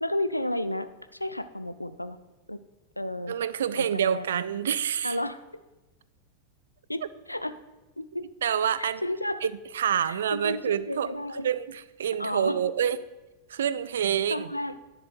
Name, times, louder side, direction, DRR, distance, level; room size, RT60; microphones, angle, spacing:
voice 1, 0.0-2.2 2.5-2.6 3.0-3.3 3.7-4.3 5.0-5.4 6.9-7.0 7.3-7.5 8.0-8.2 8.8-9.5 10.0-11.5 12.2-12.6 14.3-14.9, left 1 dB, 85° left, 13 dB, 0.4 m, -32 dB
voice 2, 3.3-5.2 8.4-9.0 9.4-11.1 11.4-13.0 13.5-14.5, right 9 dB, 65° right, 17 dB, 0.3 m, -27 dB
10.0 x 6.9 x 4.3 m, 1.1 s
figure-of-eight pair, 90°, 0 cm